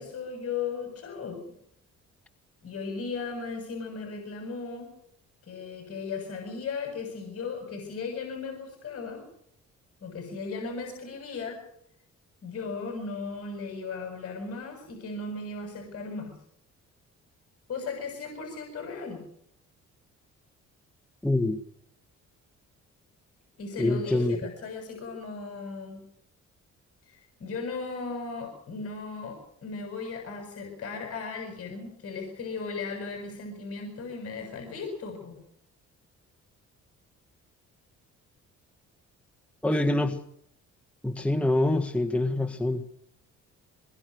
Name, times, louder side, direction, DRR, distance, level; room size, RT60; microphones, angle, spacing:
voice 1, 0.0-1.4 2.6-4.9 5.4-9.2 10.0-11.6 12.4-16.3 17.7-19.2 23.6-26.0 27.1-35.4 39.7-40.0, left 4 dB, 50° left, 6.9 m, -36 dB
voice 2, 21.2-21.6 23.8-24.4 39.6-40.2 41.0-42.8, left 1 dB, 5° left, 1.7 m, -25 dB
23.5 x 22.0 x 6.5 m
cardioid pair, 90°, 30 cm